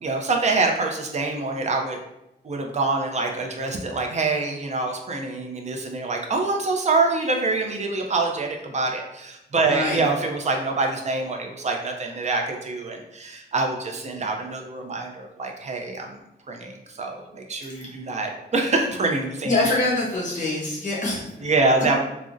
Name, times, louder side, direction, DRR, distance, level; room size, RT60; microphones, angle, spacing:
voice 1, 0.0-2.0 2.4-16.1 16.5-19.6 21.4-22.0, right 3 dB, 40° right, 2 dB, 0.4 m, -25 dB
voice 2, 9.5-10.0 17.7-17.9 19.4-21.4, left 2 dB, 45° left, -5 dB, 1.0 m, -25 dB
3.6 x 2.0 x 2.5 m, 0.87 s
wide cardioid pair, 165°, 18 cm